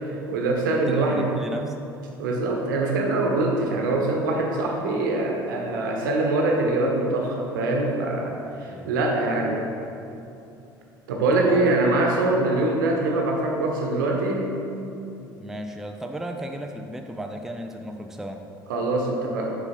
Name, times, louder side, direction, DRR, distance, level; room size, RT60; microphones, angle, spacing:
voice 1, 0.0-1.4 2.2-9.7 11.1-14.5 18.7-19.6, right 2 dB, 65° right, 0 dB, 1.0 m, -23 dB
voice 2, 0.7-1.8 8.7-8.9 11.3-11.6 15.4-18.4, equal, 5° right, 4 dB, 0.5 m, -35 dB
6.9 x 5.3 x 4.3 m, 2.7 s
figure-of-eight pair, 65°, 11 cm